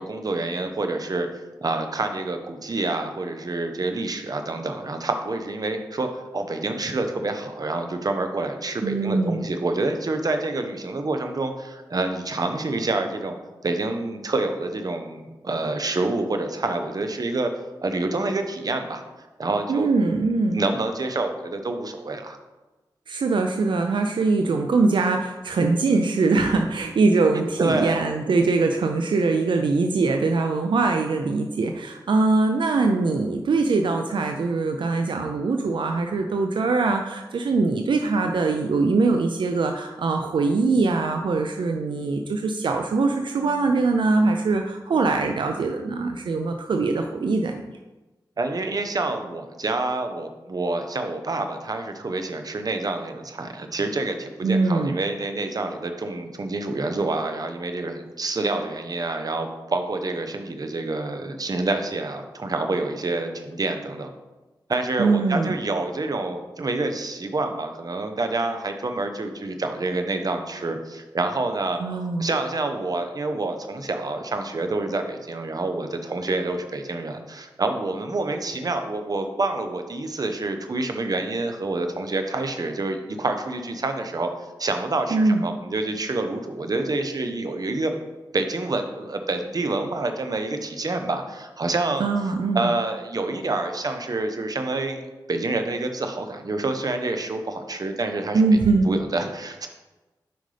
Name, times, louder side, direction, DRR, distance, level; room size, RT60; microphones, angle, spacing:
voice 1, 0.0-13.4 13.6-17.5 17.8-19.0 19.4-19.9 20.5-22.4 27.6-28.0 48.4-64.1 64.7-71.8 72.2-84.3 84.6-87.9 88.3-92.0 92.5-95.0 95.3-98.4 98.9-99.7, right 2 dB, 50° right, 6 dB, 0.8 m, -27 dB
voice 2, 8.8-9.5 19.7-20.6 23.1-47.6 54.4-55.0 65.0-65.5 71.8-72.3 85.1-85.4 92.0-92.7 98.3-98.9, right 3 dB, 75° right, 4 dB, 0.4 m, -22 dB
7.7 x 5.2 x 3.3 m, 1.1 s
wide cardioid pair, 70°, 8 cm